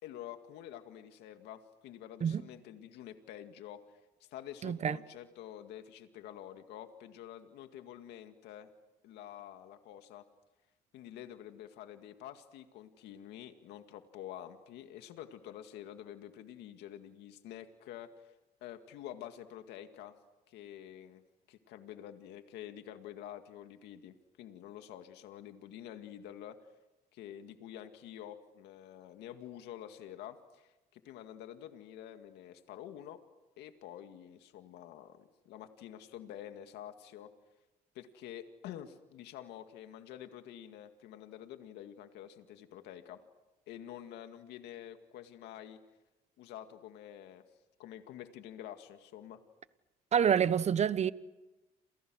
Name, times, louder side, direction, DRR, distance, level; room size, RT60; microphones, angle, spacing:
voice 1, 0.0-8.7 9.0-10.2 10.9-18.3 18.6-20.2 20.5-21.2 21.5-26.6 27.1-33.2 33.6-37.3 37.9-43.2 43.7-45.8 46.4-47.4 47.8-49.4, left 11 dB, 85° left, 2.1 m, -48 dB
voice 2, 4.6-5.0 50.1-51.1, right 8 dB, 40° right, 1.1 m, -27 dB
30.0 x 28.5 x 6.4 m
cardioid pair, 110°, 17 cm